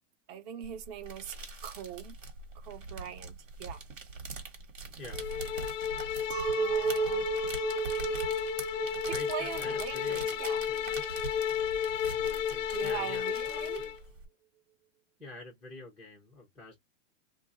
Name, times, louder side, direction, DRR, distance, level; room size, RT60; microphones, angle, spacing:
voice 1, 0.3-1.4 1.6-2.2 2.6-3.8 6.6-7.3 9.0-10.7 12.7-13.8, right 9 dB, 35° right, 0.8 m, -41 dB
sound 1, 0.6-14.2, right 4 dB, 85° right, 1.4 m, -44 dB
sound 2, 5.1-14.0, left 9 dB, 80° left, 0.5 m, -33 dB
Chink clink, 6.3-11.8, right 13 dB, 60° right, 0.4 m, -35 dB
voice 2, 9.1-10.9 12.1-14.0 15.2-16.8, left 2 dB, ahead, 0.3 m, -47 dB
2.4 x 2.3 x 3.9 m
hypercardioid pair, 135°, 38 cm